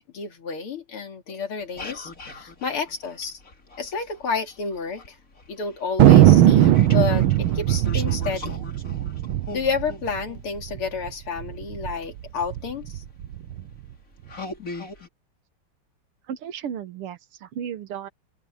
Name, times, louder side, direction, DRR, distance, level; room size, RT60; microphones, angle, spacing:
voice 1, 0.1-3.4 3.8-5.2 5.5-8.6 9.5-13.0, left 5 dB, 75° left, 3.5 m, -30 dB
sound 1, 1.6-4.4 4.7-11.5 12.4-12.5 13.1-13.3 13.8-13.9 14.3-15.1, left 3 dB, 35° left, 3.3 m, -39 dB
Thunder, 6.0-10.8 11.1-11.2 11.4-11.9 12.4-13.6, right 12 dB, 75° right, 1.7 m, -18 dB
voice 2, 16.3-18.1, right 9 dB, 90° right, 2.0 m, -34 dB
open air
omnidirectional pair, 2.4 m